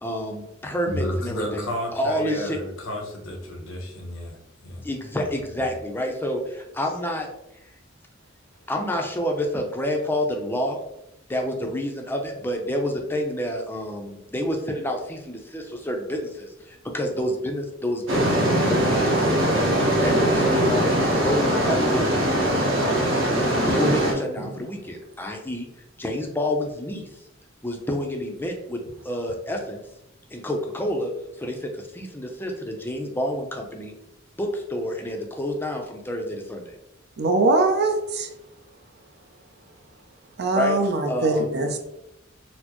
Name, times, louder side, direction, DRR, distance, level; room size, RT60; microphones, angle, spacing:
voice 1, 0.0-2.6 4.8-7.3 8.7-10.8 11.3-19.6 20.0-23.3 23.6-25.7 26.0-27.1 27.6-29.8 30.3-31.1 31.4-33.9 34.4-36.7 40.5-40.8 41.1-41.6, equal, 10° left, 2 dB, 0.5 m, -29 dB
voice 2, 0.9-4.9, equal, 85° left, 0 dB, 0.9 m, -32 dB
sound 1, 18.1-24.1, right 1 dB, 70° right, 0.9 m, -21 dB
voice 3, 37.2-38.3 40.4-41.8, right 2 dB, 55° right, 5 dB, 0.5 m, -22 dB
4.2 x 2.0 x 2.9 m, 0.85 s
head